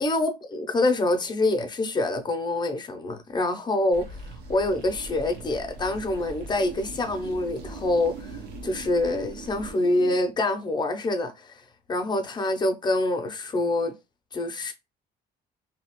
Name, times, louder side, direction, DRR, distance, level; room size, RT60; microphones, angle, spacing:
voice 1, 0.0-4.2 4.5-11.5 11.9-14.0 14.3-14.7, left 2 dB, 25° left, 0.6 m, -26 dB
sound 1, 3.9-10.2, right 3 dB, 80° right, 0.8 m, -40 dB
2.8 x 2.3 x 2.9 m
cardioid pair, 110°, 17 cm